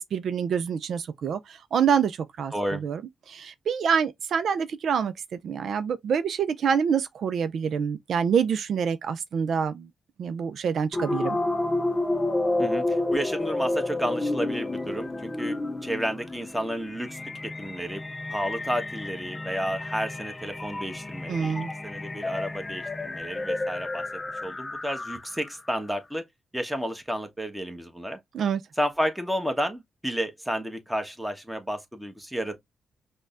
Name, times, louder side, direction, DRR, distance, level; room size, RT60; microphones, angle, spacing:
voice 1, 0.0-3.0 3.3-5.1 5.4-9.9 10.2-11.4 21.3-21.7 28.3-28.6, right 7 dB, 70° right, 0.3 m, -26 dB
voice 2, 2.5-2.8 12.6-17.2 17.6-18.0 18.3-21.5 21.8-24.0 24.4-26.3 26.5-28.2 28.8-32.5, equal, 5° right, 1.1 m, -31 dB
sound 1, 10.9-25.5, left 2 dB, 25° left, 0.4 m, -30 dB
5.1 x 2.2 x 2.4 m
supercardioid pair, 55°, 0 cm